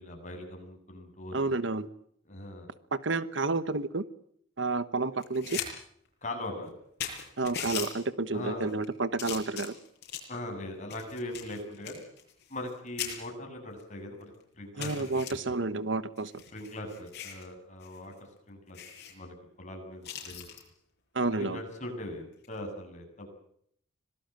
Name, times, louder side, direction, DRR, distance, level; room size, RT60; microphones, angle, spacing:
voice 1, 0.0-1.6 2.3-2.7 6.2-6.7 8.3-8.7 10.3-12.0 12.5-14.3 14.6-15.1 16.5-18.1 18.5-18.8 19.1-20.4 21.3-23.3, left 1 dB, 35° left, 3 dB, 7.6 m, -40 dB
voice 2, 1.3-1.9 2.9-4.0 4.6-5.6 7.4-9.7 14.8-16.3 21.1-21.6, right 3 dB, 65° right, 14 dB, 1.2 m, -30 dB
sound 1, 5.2-5.7 6.1-6.2 6.7-6.8 7.0-7.9 8.6-8.9 9.2-10.4 10.9-12.7 13.0-13.2 13.8-13.9 14.2-14.3 14.8-15.3 16.2-17.4 17.8-18.0 18.3-18.4 18.7-19.1 20.0-20.6 22.3-22.6, left 9 dB, 55° left, 7.2 m, -39 dB
26.0 x 19.0 x 9.2 m, 0.70 s
head